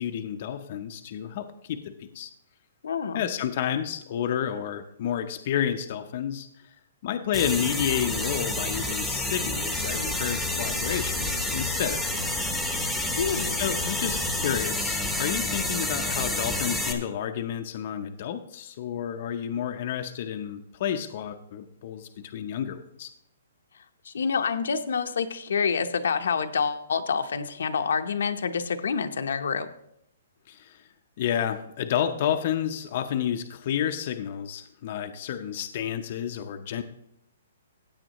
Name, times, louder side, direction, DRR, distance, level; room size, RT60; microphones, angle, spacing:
voice 1, 0.0-2.3 3.1-6.5 7.0-12.2 13.6-23.1 30.5-30.9 31.2-36.8, left 9 dB, 40° left, 6 dB, 0.6 m, -30 dB
voice 2, 2.8-3.2 13.2-13.6 24.1-29.7, left 6 dB, 75° left, 7 dB, 0.8 m, -27 dB
sound 1, 7.3-16.9, left 2 dB, ahead, 0.9 m, -29 dB
15.5 x 8.6 x 3.0 m, 0.79 s
hypercardioid pair, 170°, 0 cm